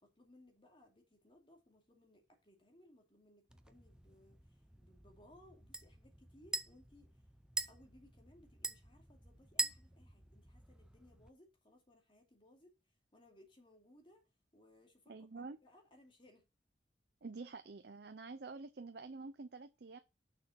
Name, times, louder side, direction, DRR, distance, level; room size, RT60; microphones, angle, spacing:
voice 1, 0.0-7.2 7.7-12.8 13.1-14.3 14.5-16.5, left 1 dB, 30° left, 2.6 m, -65 dB
sound 1, 3.5-11.3, right 2 dB, 5° right, 0.5 m, -45 dB
voice 2, 15.1-15.6 17.2-20.0, right 3 dB, 60° right, 0.6 m, -48 dB
6.7 x 5.9 x 5.7 m
head